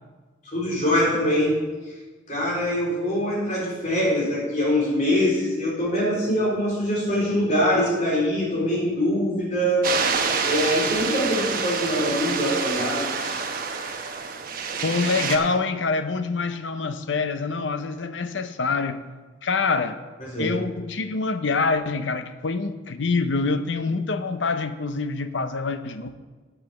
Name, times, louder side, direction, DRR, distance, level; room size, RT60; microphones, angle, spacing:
voice 1, 0.4-1.6 1.8-1.9 2.3-9.9 10.4-13.4 20.2-20.5, equal, 45° left, 3.8 m, -23 dB
sound 1, 9.8-15.4, right 5 dB, 50° right, 1.1 m, -27 dB
voice 2, 14.8-19.0 19.4-20.0 20.4-26.1, left 4 dB, 85° left, 0.7 m, -25 dB
8.6 x 8.0 x 6.9 m
head